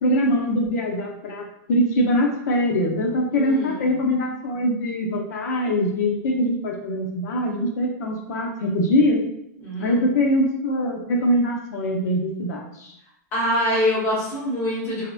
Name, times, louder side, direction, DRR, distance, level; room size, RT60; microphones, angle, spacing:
voice 1, 0.0-9.2 9.8-12.9, equal, 65° left, 1 dB, 0.6 m, -23 dB
voice 2, 3.3-3.8 9.6-10.0 13.3-15.1, equal, 25° left, -7 dB, 0.9 m, -25 dB
2.8 x 2.1 x 2.3 m, 0.77 s
supercardioid pair, 170°, 10 cm